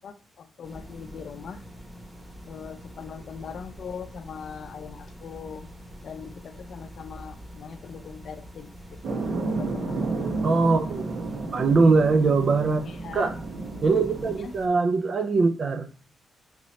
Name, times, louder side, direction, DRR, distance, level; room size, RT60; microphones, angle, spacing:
voice 1, 0.0-1.6 2.5-5.7 6.0-10.3 12.9-13.3 14.4-14.5, left 6 dB, 65° left, 8 dB, 0.5 m, -41 dB
sound 1, 0.6-14.7, equal, 20° right, 1.0 m, -45 dB
sound 2, 9.0-14.4, right 3 dB, 75° right, 0.9 m, -31 dB
voice 2, 10.4-11.0 11.5-12.8 13.1-13.3 13.8-15.9, right 4 dB, 50° right, 8 dB, 0.4 m, -21 dB
5.8 x 2.7 x 3.1 m, 0.41 s
cardioid pair, 75°, 0 cm